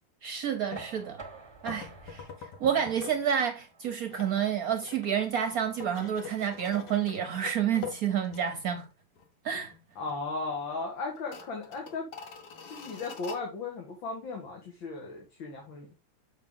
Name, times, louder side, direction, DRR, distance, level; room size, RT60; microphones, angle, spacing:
voice 1, 0.2-1.2 1.6-8.9 9.4-9.7, right 8 dB, 60° right, 1.0 m, -29 dB
sound 1, 0.7-0.9 1.7-3.3 3.6-8.9 9.2-9.3 9.7-10.2 10.5-10.6 11.1-13.4, left 7 dB, 60° left, 1.7 m, -45 dB
Knock, 0.7-6.5, right 3 dB, 20° right, 0.8 m, -50 dB
voice 2, 10.0-12.1 12.7-15.9, left 3 dB, 80° left, 2.4 m, -36 dB
6.8 x 5.6 x 3.6 m
omnidirectional pair, 2.1 m